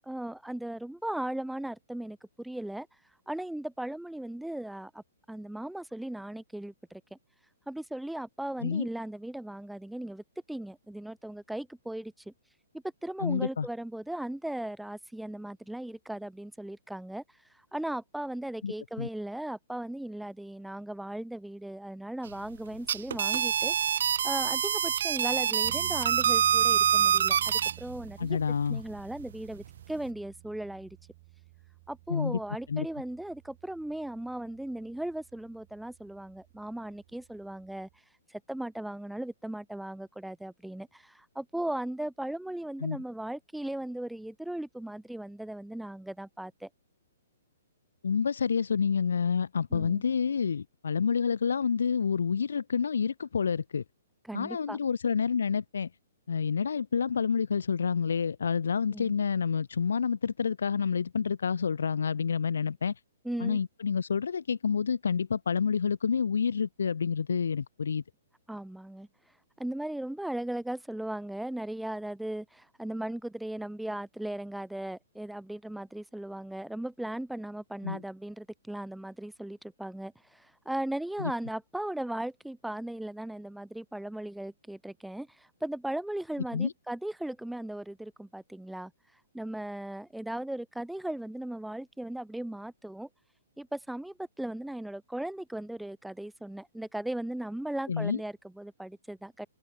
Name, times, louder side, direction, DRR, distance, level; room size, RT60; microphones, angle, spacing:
voice 1, 0.1-2.9 3.3-7.2 7.7-12.3 13.0-17.2 17.5-23.7 24.2-28.4 28.7-31.0 31.9-37.9 38.3-46.7 49.7-50.0 54.3-54.8 58.9-59.1 63.2-63.6 68.5-69.1 69.6-88.9 89.3-93.1 93.6-99.5, right 1 dB, ahead, 1.7 m, -37 dB
voice 2, 13.2-13.7 18.6-19.1 28.2-28.8 32.1-32.4 32.7-32.9 42.8-43.0 48.0-53.8 54.3-55.9 56.3-62.9 63.4-68.0 77.8-78.0 81.2-81.3 86.5-86.7 97.9-98.2, left 6 dB, 85° left, 0.3 m, -28 dB
sound 1, 22.7-27.7, right 9 dB, 65° right, 0.6 m, -25 dB
sound 2, 25.6-38.0, right 25 dB, 35° right, 1.9 m, -51 dB
open air
hypercardioid pair, 155°, 0 cm